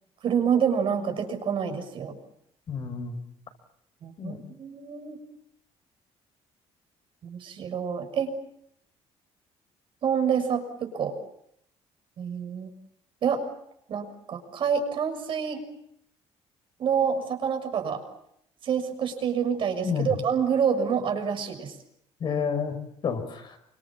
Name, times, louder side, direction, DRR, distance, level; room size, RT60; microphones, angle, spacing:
voice 1, 0.2-2.2 4.0-5.2 7.2-8.3 10.0-11.2 12.2-12.7 13.2-13.4 13.9-15.6 16.8-18.0 18.6-21.7, right 7 dB, 50° right, 6 dB, 6.5 m, -27 dB
voice 2, 2.7-3.2 4.2-4.4 19.8-20.1 22.2-22.8 23.0-23.6, left 6 dB, 45° left, 7 dB, 6.2 m, -29 dB
29.0 x 26.0 x 7.5 m, 0.75 s
cardioid pair, 145°, 11 cm